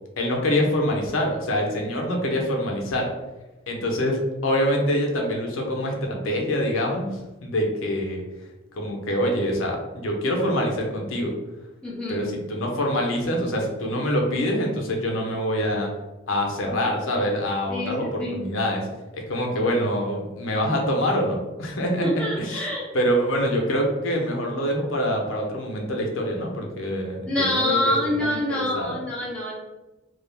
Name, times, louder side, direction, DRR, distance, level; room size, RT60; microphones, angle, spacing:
voice 1, 0.2-3.1 3.7-7.1 7.4-8.2 8.7-11.3 12.1-15.9 16.3-18.8 19.1-22.7 22.9-29.0, equal, 90° left, 1 dB, 0.6 m, -25 dB
voice 2, 11.8-12.2 17.7-18.4 22.0-22.9 27.3-29.5, left 1 dB, 5° left, -7 dB, 0.8 m, -26 dB
2.4 x 2.1 x 3.1 m, 1.1 s
head